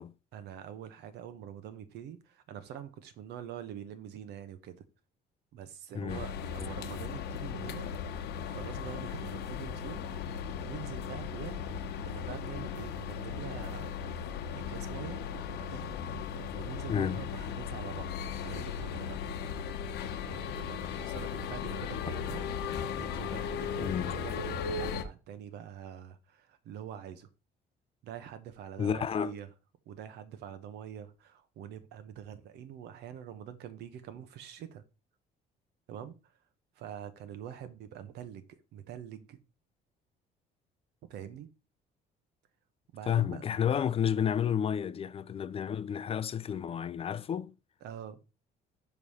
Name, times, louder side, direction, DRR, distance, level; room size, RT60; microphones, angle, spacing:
voice 1, 0.3-4.8 5.5-7.9 8.2-10.0 10.6-11.7 12.0-15.9 16.5-18.2 18.4-19.2 20.3-22.5 23.0-27.3 28.0-29.5 29.9-34.8 35.9-36.1 36.8-39.4 41.1-41.5 42.9-43.4 47.8-48.2, right 9 dB, 80° right, 1.1 m, -45 dB
sound 1, 6.1-25.0, left 7 dB, 80° left, 0.9 m, -37 dB
voice 2, 16.9-17.2 23.8-24.1 28.8-29.3 43.1-47.5, left 8 dB, 35° left, 0.4 m, -31 dB
5.4 x 4.8 x 5.5 m
cardioid pair, 110°, 17 cm